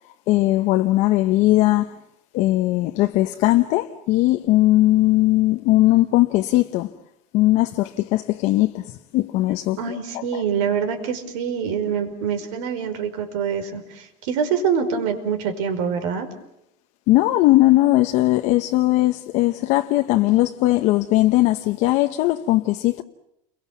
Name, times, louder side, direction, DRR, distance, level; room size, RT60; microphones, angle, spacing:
voice 1, 0.3-1.9 2.3-6.9 7.3-10.0 17.1-23.0, left 17 dB, 50° left, 1.0 m, -19 dB
voice 2, 9.8-16.3, right 7 dB, 75° right, 4.9 m, -25 dB
30.0 x 22.5 x 7.3 m
cardioid pair, 165°, 15 cm